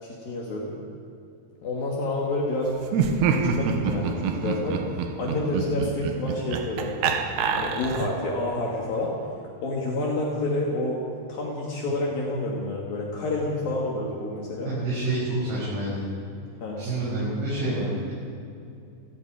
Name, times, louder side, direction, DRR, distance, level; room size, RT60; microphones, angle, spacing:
voice 1, 0.0-0.7 1.6-2.8 3.3-7.2 7.6-9.1 9.6-11.0 11.3-14.7 16.6-16.8, left 2 dB, 65° left, -3 dB, 3.8 m, -29 dB
Laughter, 2.9-8.3, right 5 dB, 80° right, 3.4 m, -27 dB
voice 2, 14.7-16.0 16.8-18.1, right 2 dB, 60° right, -10 dB, 9.2 m, -28 dB
30.0 x 19.5 x 5.0 m, 2.5 s
omnidirectional pair, 4.7 m